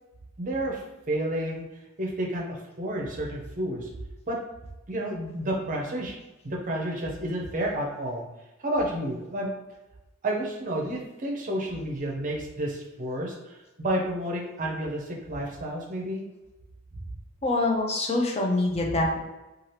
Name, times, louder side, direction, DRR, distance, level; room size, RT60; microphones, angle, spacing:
voice 1, 0.4-1.6 2.0-3.9 4.3-4.4 4.9-6.1 6.4-8.2 8.6-9.5 10.2-16.2, right 1 dB, 35° right, -1 dB, 0.6 m, -30 dB
voice 2, 17.4-19.2, left 2 dB, 30° left, 1 dB, 0.4 m, -25 dB
2.7 x 2.4 x 3.1 m, 1.0 s
head